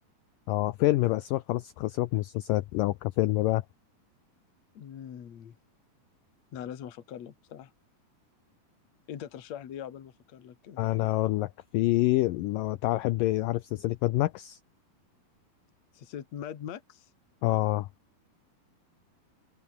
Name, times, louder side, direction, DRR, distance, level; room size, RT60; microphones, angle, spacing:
voice 1, 0.5-3.6 10.8-14.6 17.4-17.9, left 17 dB, 80° left, 2.0 m, -27 dB
voice 2, 4.7-5.6 6.5-7.7 9.1-10.8 15.9-17.1, left 9 dB, 50° left, 3.0 m, -42 dB
open air
omnidirectional pair, 4.7 m